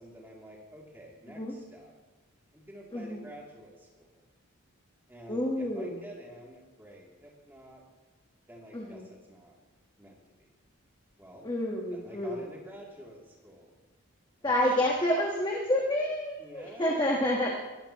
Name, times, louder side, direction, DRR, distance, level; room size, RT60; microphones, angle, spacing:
voice 1, 0.0-1.9 2.5-4.2 5.1-7.8 8.5-9.6 10.0-10.5 11.2-11.5 11.9-13.7 14.4-15.1 16.4-17.3, equal, 10° right, -3 dB, 2.7 m, -49 dB
voice 2, 2.9-3.2 5.3-6.0 8.7-9.1 11.4-12.4 14.4-17.5, left 1 dB, 20° left, -1 dB, 1.3 m, -29 dB
21.5 x 14.0 x 3.0 m, 1.2 s
head